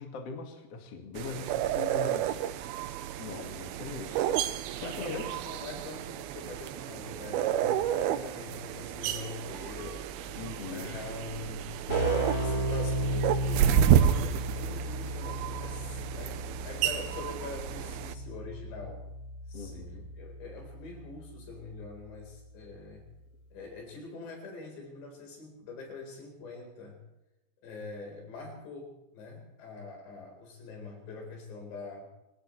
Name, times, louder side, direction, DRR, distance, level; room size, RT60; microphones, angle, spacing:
voice 1, 0.0-2.4 3.2-5.2 10.4-11.0 19.5-20.1, left 4 dB, 45° left, 3 dB, 2.3 m, -41 dB
sound 1, 1.2-18.2, right 10 dB, 80° right, 2.4 m, -30 dB
voice 2, 4.7-10.1 10.7-11.8 12.2-19.1 19.5-23.1 23.5-27.0 27.6-32.1, left 3 dB, 75° left, 1 dB, 6.5 m, -44 dB
Keyboard (musical), 11.9-22.2, equal, 30° left, 3.9 m, -35 dB
24.0 x 18.5 x 3.2 m, 0.95 s
omnidirectional pair, 5.0 m